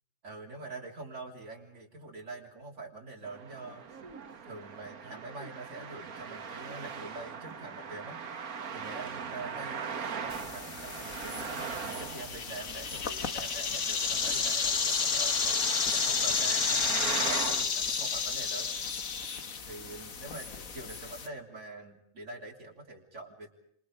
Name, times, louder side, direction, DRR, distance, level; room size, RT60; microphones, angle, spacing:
voice 1, 0.2-3.8 4.5-8.2 8.7-15.6 15.9-18.7 19.7-23.5, right 2 dB, 55° right, -1 dB, 3.9 m, -45 dB
Traffic noise roadway noise, 3.2-17.6, right 6 dB, 90° right, 1.9 m, -40 dB
sound 1, 10.3-21.3, left 5 dB, 70° left, 1.9 m, -31 dB
29.0 x 27.0 x 5.1 m, 0.69 s
omnidirectional pair, 1.5 m